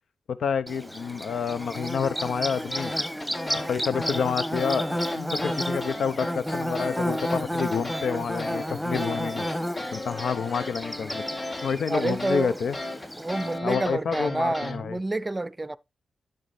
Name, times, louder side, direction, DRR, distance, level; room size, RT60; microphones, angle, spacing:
voice 1, 0.4-2.9 3.7-9.5 9.9-11.2 11.6-12.8 13.6-15.0, left 6 dB, 75° left, 0.8 m, -28 dB
Bird / Buzz, 0.7-13.6, equal, 5° left, 1.3 m, -32 dB
sound 1, 2.7-14.8, left 2 dB, 40° left, 3.8 m, -36 dB
voice 2, 11.9-12.6 13.2-15.8, right 2 dB, 25° right, 0.5 m, -28 dB
9.7 x 6.8 x 3.3 m
supercardioid pair, 45°, 0 cm